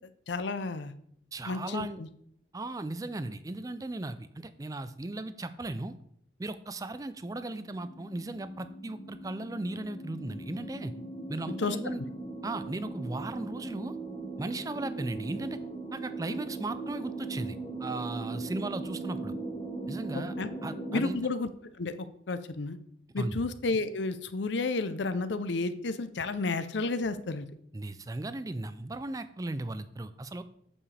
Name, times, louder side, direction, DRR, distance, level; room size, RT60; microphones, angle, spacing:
voice 1, 0.3-0.9 1.5-2.1 11.6-11.8 20.1-20.5 20.9-21.5 21.8-21.9 22.3-22.8 23.1-27.5, left 3 dB, 70° left, 11 dB, 0.6 m, -31 dB
voice 2, 1.3-2.0 2.5-5.9 6.4-10.9 11.3-12.0 12.4-14.0 14.4-15.6 15.9-19.3 19.9-20.3 20.6-21.2 23.2-23.4 27.7-30.4, right 2 dB, 20° right, 12 dB, 0.4 m, -36 dB
sound 1, 7.3-21.1, right 3 dB, 25° left, 0.7 m, -39 dB
8.5 x 7.1 x 3.3 m, 0.67 s
head